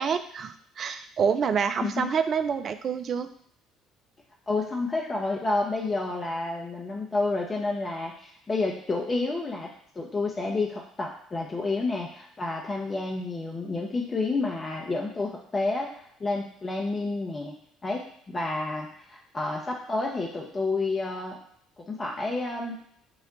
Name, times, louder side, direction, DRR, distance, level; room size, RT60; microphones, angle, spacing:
voice 1, 0.0-3.3, right 6 dB, 45° right, 9 dB, 0.3 m, -27 dB
voice 2, 4.5-17.5 17.8-21.4 21.8-22.8, left 3 dB, 25° left, -1 dB, 0.6 m, -30 dB
4.0 x 2.1 x 3.7 m, 0.69 s
figure-of-eight pair, 55°, 0 cm